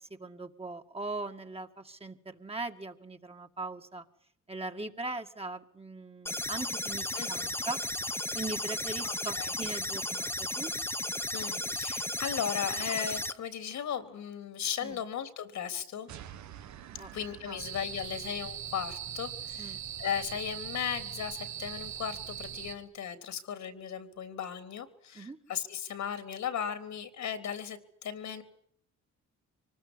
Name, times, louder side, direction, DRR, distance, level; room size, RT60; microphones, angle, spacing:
voice 1, 0.0-4.0 4.5-7.8 8.3-10.7 14.8-15.0 17.0-17.6 18.1-18.2 19.6-19.8 25.1-25.4, right 2 dB, 20° right, 4 dB, 2.2 m, -40 dB
sound 1, 6.3-13.3, left 1 dB, 10° left, 1.1 m, -34 dB
voice 2, 7.1-7.5 9.0-9.5 11.3-16.1 17.1-28.4, left 8 dB, 70° left, 10 dB, 3.5 m, -36 dB
sound 2, 16.1-18.6, right 10 dB, 70° right, 1.3 m, -49 dB
sound 3, 17.6-22.7, right 9 dB, 85° right, 4.7 m, -40 dB
25.0 x 20.0 x 9.9 m, 0.66 s
cardioid pair, 90°, 30 cm